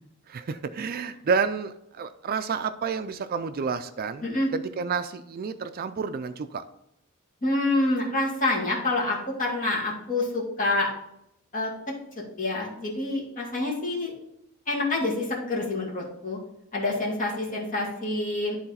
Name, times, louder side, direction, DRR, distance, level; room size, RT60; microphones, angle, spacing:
voice 1, 0.3-6.6, right 5 dB, 45° right, 10 dB, 0.4 m, -30 dB
voice 2, 7.4-10.9 11.5-11.7 12.4-14.1 14.7-16.4 16.7-18.6, left 2 dB, 40° left, -3 dB, 2.3 m, -27 dB
11.0 x 3.9 x 4.2 m, 0.80 s
head